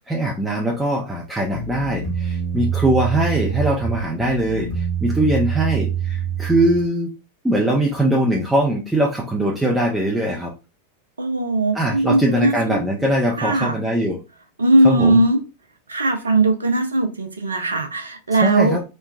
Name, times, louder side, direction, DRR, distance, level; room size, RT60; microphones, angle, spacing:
voice 1, 0.1-7.1 7.4-10.5 11.7-14.2 14.8-15.2 18.4-18.8, right 1 dB, 5° right, -2 dB, 0.5 m, -21 dB
sound 1, 1.5-6.9, right 7 dB, 35° right, 1.1 m, -25 dB
voice 2, 11.2-12.8 13.4-13.7 14.6-15.4 15.9-18.8, right 2 dB, 75° right, 6 dB, 0.5 m, -19 dB
3.1 x 2.2 x 2.3 m, 0.29 s
figure-of-eight pair, 90°, 0 cm